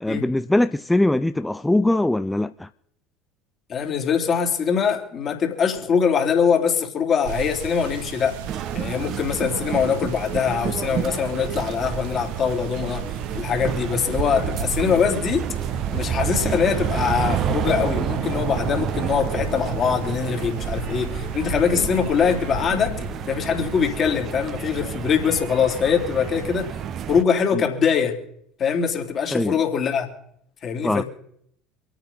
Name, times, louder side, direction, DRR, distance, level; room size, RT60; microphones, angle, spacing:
voice 1, 0.0-2.7 21.7-21.8 27.5-27.6 29.3-29.6 30.8-31.0, left 1 dB, 10° left, 0.5 m, -21 dB
voice 2, 3.7-8.4 8.7-15.5 15.9-23.0 23.3-26.7 27.1-28.2 28.6-30.1 30.6-31.0, left 7 dB, 40° left, 3.4 m, -23 dB
sound 1, 7.2-22.7, right 8 dB, 65° right, 1.3 m, -36 dB
sound 2, 8.5-27.2, right 9 dB, 45° right, 1.1 m, -29 dB
sound 3, 15.9-23.2, left 5 dB, 65° left, 3.6 m, -36 dB
26.0 x 8.9 x 5.5 m
figure-of-eight pair, 70°, 0 cm